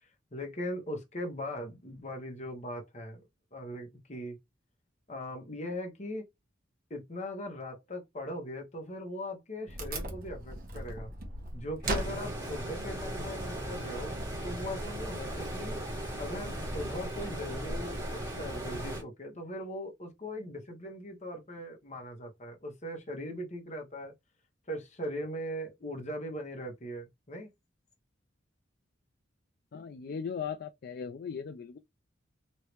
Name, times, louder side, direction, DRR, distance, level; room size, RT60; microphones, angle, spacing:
voice 1, 0.3-3.2 3.5-4.4 5.1-6.2 6.9-11.1 11.5-14.1 14.4-15.8 16.2-24.1 24.7-27.5, equal, 35° left, 1.1 m, -40 dB
Wood, 9.7-15.4, right 1 dB, 50° right, 1.1 m, -40 dB
Stream, 11.8-19.0, right 1 dB, 20° right, 1.5 m, -37 dB
voice 2, 29.7-31.8, left 6 dB, 55° left, 0.4 m, -38 dB
3.2 x 2.7 x 3.1 m
head